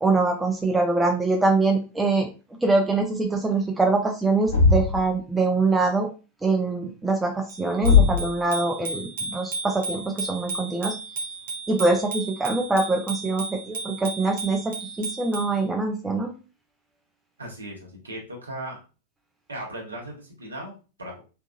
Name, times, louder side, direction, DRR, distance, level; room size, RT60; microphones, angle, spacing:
voice 1, 0.0-2.3 2.6-6.1 6.4-11.0 11.7-16.3, right 3 dB, 10° right, 2 dB, 0.4 m, -24 dB
Thump thud, 4.5-5.1 7.8-8.4, left 5 dB, 65° left, 0.7 m, -18 dB
Bicycle bell, 7.5-15.6, right 3 dB, 55° right, 0.6 m, -34 dB
voice 2, 17.4-18.8 19.5-21.2, right 1 dB, 75° right, -1 dB, 1.0 m, -37 dB
2.7 x 2.3 x 2.3 m, 0.32 s
figure-of-eight pair, 90°, 0 cm